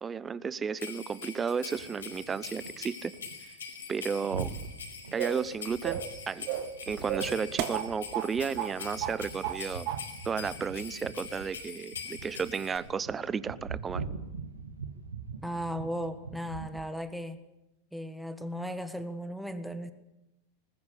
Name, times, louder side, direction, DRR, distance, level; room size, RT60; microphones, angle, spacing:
voice 1, 0.0-3.1 3.9-4.5 5.1-6.5 6.9-9.9 10.2-14.0, right 6 dB, 20° right, 19 dB, 0.8 m, -33 dB
sound 1, 0.8-12.8, left 6 dB, 70° left, 4.9 m, -44 dB
sound 2, 1.7-2.9 3.1-3.4 3.6-16.8, right 5 dB, 70° right, 2.0 m, -43 dB
sound 3, 5.2-5.5 5.8-6.1 6.5-6.8 7.1-8.3 8.6-8.7 9.0-9.6 9.9-10.0, right 12 dB, 45° right, 1.4 m, -33 dB
voice 2, 15.4-17.4 17.9-19.9, equal, ahead, 10 dB, 1.5 m, -36 dB
20.5 x 20.5 x 8.5 m, 0.90 s
figure-of-eight pair, 90°, 0 cm